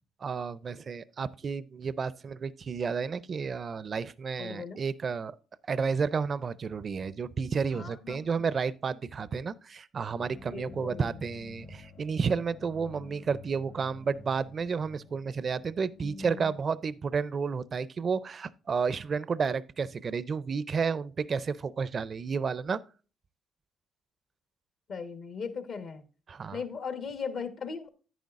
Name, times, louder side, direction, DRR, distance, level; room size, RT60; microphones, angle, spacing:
voice 1, 0.2-5.4 5.7-22.8 26.3-26.6, right 5 dB, 45° right, 0.4 m, -31 dB
voice 2, 4.4-4.8 7.7-8.4 10.5-11.1 15.9-16.5 24.9-26.0 26.5-27.9, left 5 dB, 65° left, 1.2 m, -38 dB
sound 1, 10.1-17.9, left 5 dB, 85° left, 3.9 m, -50 dB
10.0 x 9.2 x 2.5 m
cardioid pair, 90°, 0 cm